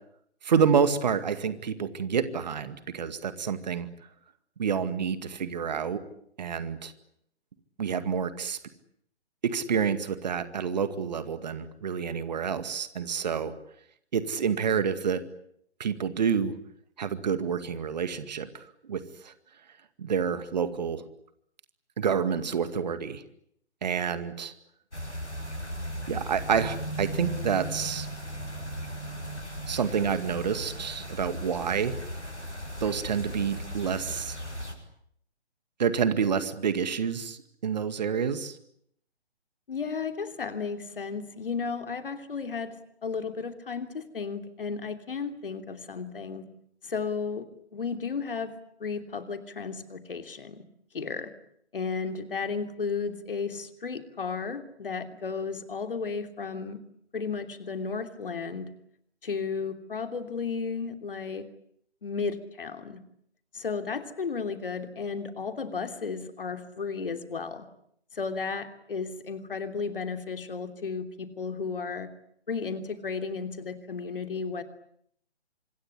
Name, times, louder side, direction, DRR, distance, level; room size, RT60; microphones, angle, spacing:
voice 1, 0.4-3.9 4.6-6.0 6.4-6.9 7.8-8.6 9.4-13.5 14.1-15.2 15.8-16.5 17.0-19.3 20.0-21.0 22.0-23.2 23.8-24.5 26.1-28.1 29.7-32.0 32.8-34.3 35.8-38.6, right 7 dB, 40° right, 12 dB, 2.2 m, -28 dB
sound 1, 24.9-34.7, equal, 90° left, 7.3 m, -37 dB
voice 2, 39.7-46.4 46.8-48.5 48.8-50.6 50.9-51.3 51.7-56.8 57.1-58.7 59.2-61.5 62.0-63.0 63.5-67.7 68.1-72.1 72.5-74.6, left 5 dB, 55° left, 8 dB, 3.1 m, -34 dB
26.0 x 22.0 x 9.9 m, 0.70 s
figure-of-eight pair, 140°, 33 cm